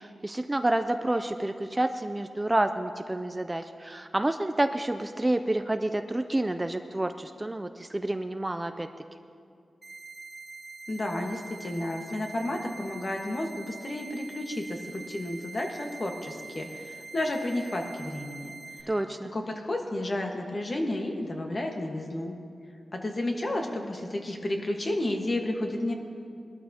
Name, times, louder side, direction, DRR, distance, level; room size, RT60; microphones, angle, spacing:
voice 1, 0.0-8.9 18.9-19.3, right 1 dB, 15° right, 8 dB, 0.4 m, -29 dB
sound 1, 9.8-18.8, right 3 dB, 35° right, 1.5 m, -44 dB
voice 2, 10.9-18.5 18.8-18.9 19.3-22.3 22.9-25.9, left 1 dB, 40° left, 2 dB, 1.4 m, -32 dB
21.0 x 12.5 x 2.9 m, 2.3 s
wide cardioid pair, 115°, 0 cm